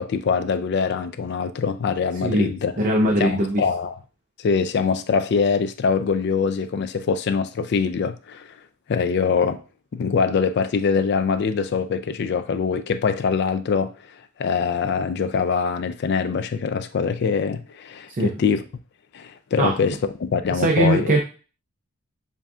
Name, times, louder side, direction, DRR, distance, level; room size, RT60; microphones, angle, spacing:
voice 1, 0.0-2.8 3.2-4.0 4.4-8.5 8.9-9.6 9.9-13.9 14.4-18.6 19.1-21.1, left 5 dB, 50° left, 0.3 m, -23 dB
voice 2, 2.8-3.6 18.1-18.4 19.6-19.8 20.5-21.2, right 1 dB, 35° right, 0.5 m, -20 dB
7.1 x 2.6 x 2.3 m
head